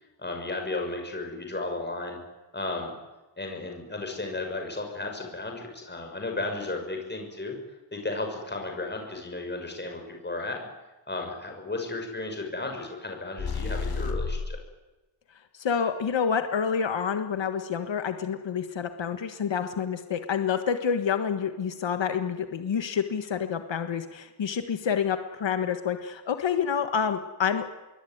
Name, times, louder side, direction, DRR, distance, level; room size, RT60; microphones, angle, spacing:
voice 1, 0.2-2.2 2.5-2.9 3.4-7.6 7.9-10.7 11.1-14.6, left 2 dB, 25° left, 3 dB, 6.4 m, -34 dB
sound 1, 13.4-14.6, left 4 dB, 55° left, 2.6 m, -30 dB
voice 2, 15.5-27.7, left 7 dB, 85° left, 8 dB, 1.6 m, -28 dB
27.0 x 22.0 x 9.5 m, 1.1 s
wide cardioid pair, 155°, 43 cm